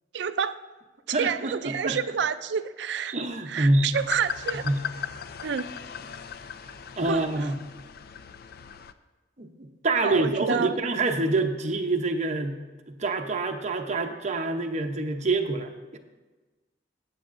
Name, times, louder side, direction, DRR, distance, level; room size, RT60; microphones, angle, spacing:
voice 1, 0.1-0.6 1.1-3.1 3.5-4.7 5.4-5.7 7.1-7.5 10.0-10.8, right 7 dB, 65° right, 12 dB, 0.4 m, -29 dB
voice 2, 1.1-2.0 3.1-3.9 4.6-4.8 7.0-7.6 9.4-9.5 9.8-12.6 12.9-16.0, right 2 dB, 40° right, 5 dB, 0.8 m, -26 dB
sound 1, 3.9-8.9, left 8 dB, 55° left, 0.4 m, -38 dB
14.5 x 8.6 x 2.6 m, 1.3 s
head